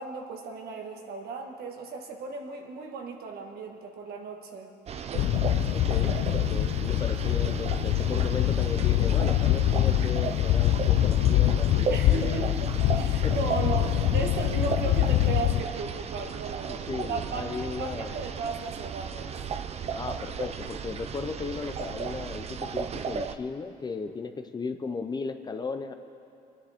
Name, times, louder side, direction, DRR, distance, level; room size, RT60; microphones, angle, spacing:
voice 1, 0.0-4.7 11.9-12.5 12.9-19.4, right 4 dB, 65° right, 2 dB, 1.6 m, -36 dB
sound 1, 4.9-23.3, right 6 dB, 40° right, 0.6 m, -35 dB
sound 2, 5.1-15.6, left 13 dB, 70° left, 0.5 m, -24 dB
voice 2, 5.7-12.5 13.2-13.5 16.7-18.3 19.9-25.9, left 4 dB, 25° left, 8 dB, 0.6 m, -36 dB
23.5 x 10.0 x 3.6 m, 2.7 s
cardioid pair, 110°, 17 cm